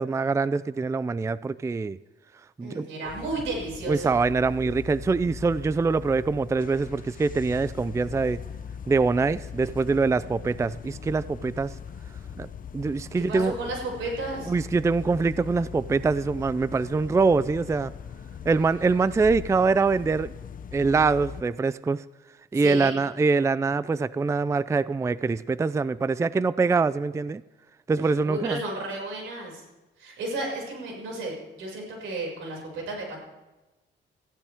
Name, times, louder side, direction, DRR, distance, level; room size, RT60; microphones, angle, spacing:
voice 1, 0.0-2.0 2.6-2.9 3.9-8.4 8.9-11.7 12.4-12.5 12.7-13.5 14.5-17.9 18.4-20.3 20.7-22.0 22.5-27.4 27.9-28.6, right 4 dB, 15° right, 0.4 m, -24 dB
voice 2, 2.6-4.1 13.2-14.5 22.5-22.9 28.2-29.6 30.0-33.2, right 2 dB, 90° right, 6.2 m, -33 dB
sound 1, 3.0-21.4, left 7 dB, 45° left, 0.8 m, -40 dB
19.5 x 15.0 x 3.6 m
cardioid pair, 90°, 20 cm